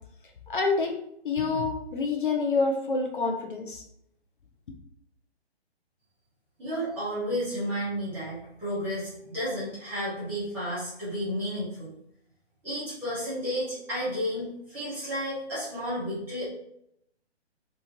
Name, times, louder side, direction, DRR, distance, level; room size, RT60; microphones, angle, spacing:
voice 1, 0.5-0.9 1.2-3.8, left 4 dB, 50° left, 2 dB, 0.5 m, -27 dB
voice 2, 6.6-11.9 12.6-16.4, equal, 5° right, -11 dB, 0.6 m, -32 dB
3.0 x 2.4 x 2.6 m, 0.74 s
figure-of-eight pair, 140°, 34 cm